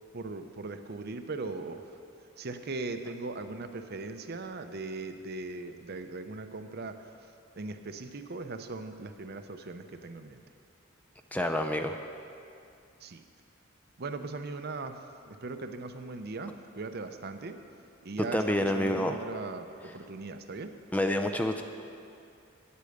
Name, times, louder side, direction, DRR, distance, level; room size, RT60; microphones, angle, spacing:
voice 1, 0.1-1.8 2.4-7.1 7.6-10.4 13.0-13.2 14.0-15.0 15.3-17.6 18.0-19.7 19.9-20.7, right 3 dB, 50° right, 8 dB, 0.6 m, -39 dB
voice 2, 11.3-12.0 18.3-19.2 20.9-21.6, left 1 dB, 5° left, 5 dB, 0.4 m, -28 dB
9.9 x 8.4 x 7.9 m, 2.5 s
head